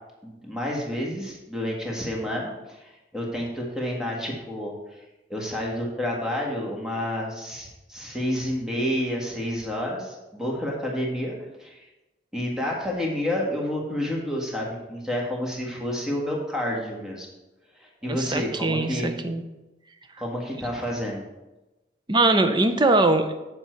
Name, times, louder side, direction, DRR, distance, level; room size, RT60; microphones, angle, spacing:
voice 1, 0.2-4.7 5.3-11.3 11.6-11.8 12.3-17.3 17.8-19.1 20.2-21.2, equal, 5° right, -2 dB, 1.7 m, -29 dB
voice 2, 18.1-19.4 22.1-23.3, right 2 dB, 25° right, 8 dB, 0.7 m, -21 dB
7.9 x 7.3 x 4.5 m, 1.0 s
head